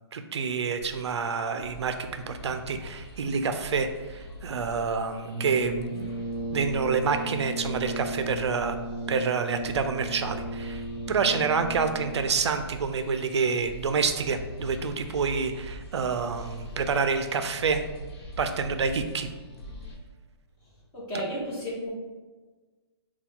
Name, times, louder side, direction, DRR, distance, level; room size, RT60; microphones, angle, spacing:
voice 1, 0.1-6.1 6.5-8.8 9.1-17.8 18.4-19.3, right 5 dB, 80° right, 8 dB, 0.4 m, -28 dB
sound 1, 0.8-20.0, equal, 65° left, 1.1 m, -43 dB
Brass instrument, 5.3-12.4, right 1 dB, 35° right, 0.7 m, -35 dB
voice 2, 20.9-21.9, equal, 15° left, -7 dB, 1.0 m, -33 dB
4.5 x 2.3 x 3.6 m, 1.3 s
hypercardioid pair, 170°, 14 cm